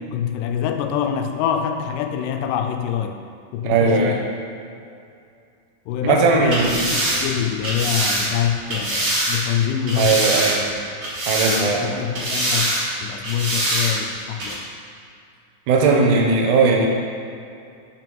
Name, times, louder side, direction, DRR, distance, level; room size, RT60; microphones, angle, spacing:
voice 1, 0.1-3.2 3.5-4.2 5.9-6.6 6.9-10.3 11.5-14.6, left 9 dB, 85° left, 6 dB, 2.1 m, -25 dB
voice 2, 3.6-4.2 6.0-6.9 10.0-10.7 11.3-12.0 15.7-16.9, right 4 dB, 80° right, 1 dB, 2.1 m, -18 dB
sound 1, 6.4-9.4 9.9-10.7 11.0-11.8 12.1-12.8 13.2-13.9 14.4-14.5, right 1 dB, 60° right, 0.9 m, -23 dB
5.5 x 4.7 x 6.1 m, 2.5 s
omnidirectional pair, 3.8 m